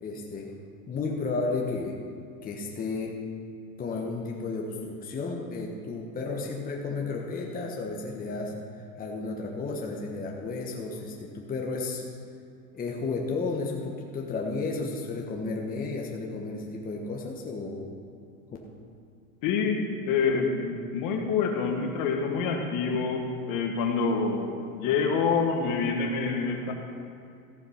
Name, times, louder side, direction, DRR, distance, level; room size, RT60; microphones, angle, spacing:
voice 1, 0.0-0.6 0.9-2.0 2.4-3.2 3.8-12.1 12.7-17.9, left 3 dB, 20° left, -1 dB, 1.2 m, -33 dB
voice 2, 19.4-26.7, left 5 dB, 50° left, 3 dB, 1.6 m, -27 dB
14.5 x 7.3 x 5.7 m, 2.4 s
supercardioid pair, 130°, 43 cm